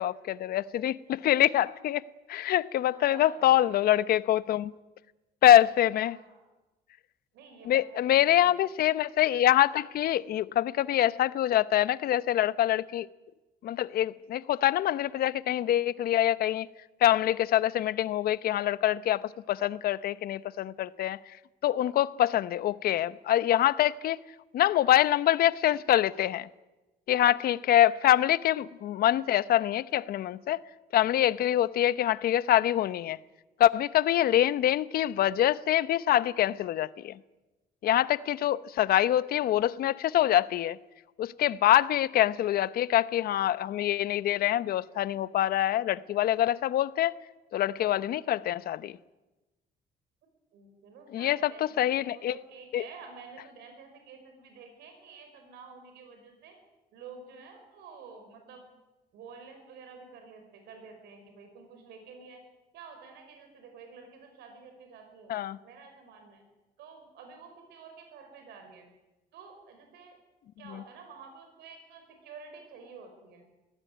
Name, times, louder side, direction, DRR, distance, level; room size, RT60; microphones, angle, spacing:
voice 1, 0.0-2.0 2.3-4.7 5.4-6.2 7.6-13.1 13.6-16.7 17.0-21.4 21.6-24.2 24.5-26.5 27.1-30.6 30.9-33.2 33.6-37.2 37.8-40.8 41.2-47.1 47.5-49.0 51.1-52.4 52.7-52.8 65.3-65.6, left 12 dB, 65° left, 0.9 m, -25 dB
voice 2, 2.9-3.6 6.0-6.5 7.3-8.5 50.5-56.6 56.9-58.7 59.1-62.4 62.7-66.4 66.8-68.9 69.3-70.2 70.6-73.5, right 5 dB, 80° right, 5.2 m, -50 dB
22.0 x 17.5 x 9.3 m
cardioid pair, 110°, 17 cm